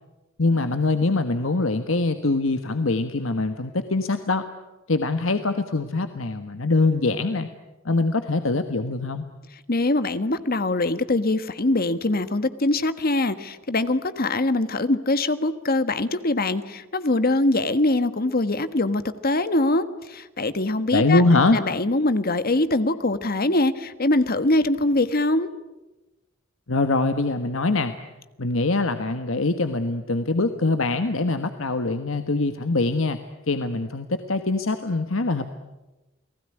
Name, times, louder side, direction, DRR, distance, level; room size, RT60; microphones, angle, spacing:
voice 1, 0.4-4.5 4.9-7.5 7.8-9.2 20.9-21.6 26.7-27.9 28.4-33.2 33.5-35.5, left 3 dB, 75° left, 8 dB, 1.4 m, -23 dB
voice 2, 9.7-21.2 21.5-25.5, left 2 dB, 50° left, 12 dB, 1.4 m, -23 dB
30.0 x 19.5 x 9.9 m, 1.1 s
head